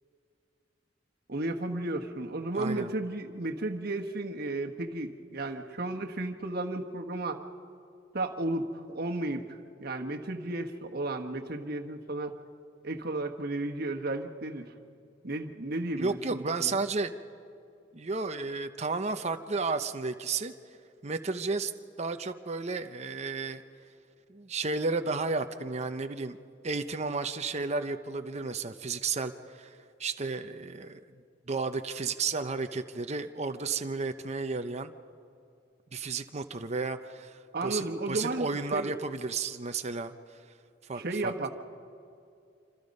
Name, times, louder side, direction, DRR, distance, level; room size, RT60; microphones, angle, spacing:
voice 1, 1.3-7.4 8.1-9.4 9.8-12.3 12.8-14.7 15.2-16.8 37.5-38.9 40.9-41.5, right 2 dB, 55° right, 4 dB, 1.4 m, -33 dB
voice 2, 2.5-2.9 16.0-17.1 17.9-20.5 21.0-21.7 22.0-23.6 24.3-26.4 26.6-31.0 31.5-34.9 35.9-40.1 40.8-41.3, right 4 dB, 35° right, 8 dB, 0.8 m, -33 dB
27.0 x 26.0 x 5.4 m, 2.4 s
head